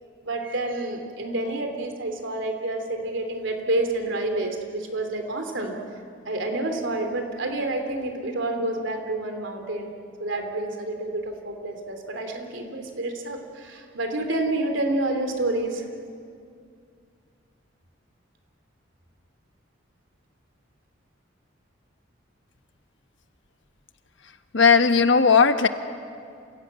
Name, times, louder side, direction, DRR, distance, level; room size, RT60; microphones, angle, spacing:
voice 1, 0.2-5.8 6.3-9.9 10.2-15.8, right 2 dB, 75° right, 4 dB, 3.1 m, -28 dB
voice 2, 24.5-25.7, left 5 dB, 70° left, 8 dB, 1.2 m, -17 dB
28.0 x 17.0 x 8.9 m, 2.3 s
head